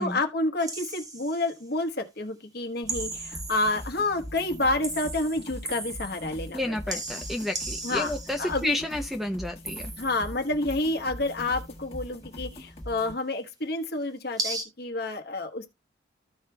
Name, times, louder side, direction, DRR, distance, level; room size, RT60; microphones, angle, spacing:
voice 1, 0.0-6.7 7.8-8.1 8.4-8.8 10.0-15.7, left 2 dB, 55° left, 1.1 m, -29 dB
sound 1, 0.6-1.6 2.9-4.1 4.4-6.5 6.9-8.6 9.6-10.4 10.7-11.6 14.4-14.6, right 2 dB, 20° right, 1.2 m, -37 dB
sound 2, 2.8-13.1, equal, 30° left, 1.5 m, -42 dB
voice 2, 6.5-9.9, left 1 dB, ahead, 0.5 m, -31 dB
14.5 x 5.2 x 2.2 m
head